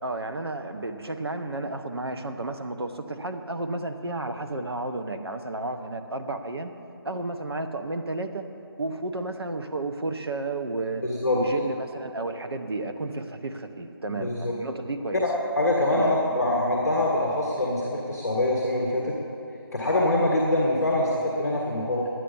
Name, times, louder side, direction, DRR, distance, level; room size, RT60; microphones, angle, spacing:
voice 1, 0.0-6.8 7.0-8.5 8.8-11.0 11.3-15.2 15.9-16.2, right 2 dB, 80° right, 6 dB, 1.1 m, -32 dB
voice 2, 11.0-11.4 14.2-14.5 15.2-19.1 19.7-22.1, left 1 dB, ahead, -24 dB, 0.5 m, -24 dB
11.5 x 9.3 x 7.0 m, 2.7 s
figure-of-eight pair, 175°, 13 cm